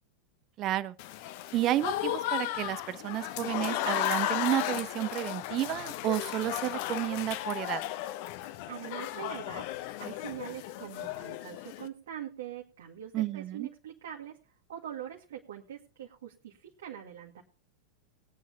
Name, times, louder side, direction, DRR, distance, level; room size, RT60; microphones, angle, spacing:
voice 1, 0.6-1.0 1.5-7.8 13.1-13.7, right 14 dB, 35° right, 0.8 m, -31 dB
Applause / Crowd, 1.0-11.9, left 13 dB, 45° left, 0.9 m, -35 dB
voice 2, 8.7-14.4 14.7-17.4, right 10 dB, 60° right, 1.9 m, -43 dB
20.0 x 9.3 x 2.8 m
figure-of-eight pair, 90°, 0 cm